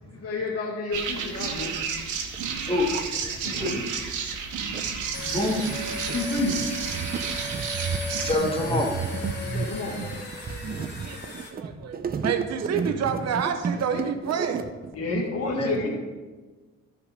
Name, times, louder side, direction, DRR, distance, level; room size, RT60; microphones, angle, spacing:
voice 1, 0.0-1.7 3.5-3.8 6.1-6.6 9.4-10.0 14.9-15.9, left 3 dB, 50° left, -1 dB, 1.9 m, -30 dB
sound 1, 0.9-8.3, right 6 dB, 80° right, 1.3 m, -32 dB
sound 2, 2.3-2.4 2.7-3.7 4.3-15.2, right 5 dB, 30° right, 0.6 m, -32 dB
sound 3, 5.1-11.5, left 1 dB, 35° left, 2.4 m, -36 dB
voice 2, 8.2-9.3 15.5-15.9, left 2 dB, 20° left, 0 dB, 2.0 m, -26 dB
voice 3, 10.7-14.7, right 7 dB, 60° right, 7 dB, 0.9 m, -29 dB
11.5 x 5.2 x 5.0 m, 1.3 s
cardioid pair, 90°, 30 cm